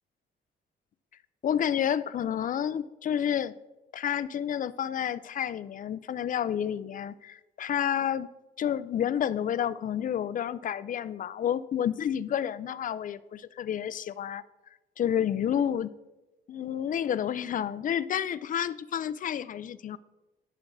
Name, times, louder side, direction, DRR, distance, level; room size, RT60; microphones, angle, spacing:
voice 1, 1.4-3.6 3.9-8.3 8.6-14.4 15.0-15.9 16.5-20.0, left 9 dB, 45° left, 16 dB, 0.4 m, -30 dB
13.0 x 5.8 x 2.6 m, 1.1 s
cardioid pair, 90°, 20 cm